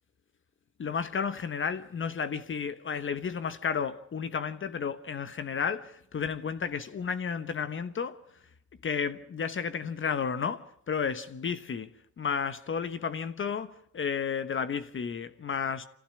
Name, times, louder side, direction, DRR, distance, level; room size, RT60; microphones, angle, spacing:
voice 1, 0.8-8.1 8.8-11.9 12.2-15.8, left 6 dB, 40° left, 1.2 m, -32 dB
25.0 x 15.5 x 9.8 m
cardioid pair, 90°, 30 cm